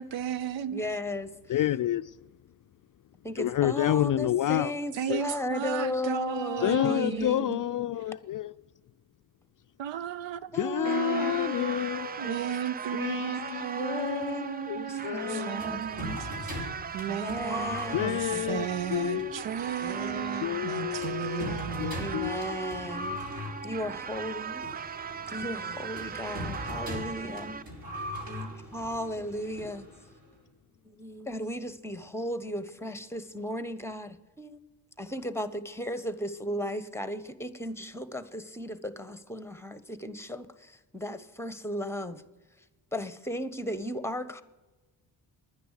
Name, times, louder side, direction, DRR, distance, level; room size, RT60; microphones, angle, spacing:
voice 1, 0.0-0.8 4.9-7.6 9.8-11.4 12.2-22.2, right 9 dB, 70° right, 0.8 m, -35 dB
voice 2, 0.7-1.7 3.2-7.6 10.5-11.9 12.2-12.8 13.8-16.1 17.1-18.7 19.8-21.6 22.0-23.2 23.6-24.6 25.3-27.6 28.2-29.9 30.8-34.6 35.0-42.2 42.9-44.4, equal, 5° left, 1.1 m, -36 dB
voice 3, 1.5-2.0 3.4-4.7 5.1-5.2 6.6-8.5 10.6-12.3 12.9-15.5 17.9-18.7 18.9-19.4 20.4-22.4, left 12 dB, 45° left, 0.4 m, -29 dB
sound 1, 10.9-27.6, right 6 dB, 20° right, 0.4 m, -38 dB
sound 2, 15.6-30.3, left 1 dB, 50° right, 5.6 m, -41 dB
10.5 x 10.0 x 6.6 m
supercardioid pair, 50°, 46 cm